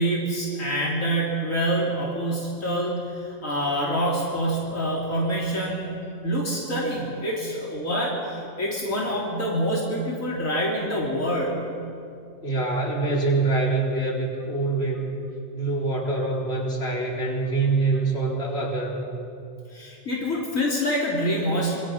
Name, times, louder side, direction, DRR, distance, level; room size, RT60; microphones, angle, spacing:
voice 1, 0.0-6.0 6.2-11.6 19.7-21.8, equal, 70° left, -4 dB, 3.8 m, -26 dB
voice 2, 12.4-15.1 15.5-19.1, right 3 dB, 50° left, -3 dB, 4.3 m, -25 dB
27.0 x 24.0 x 5.9 m, 2.5 s
omnidirectional pair, 1.4 m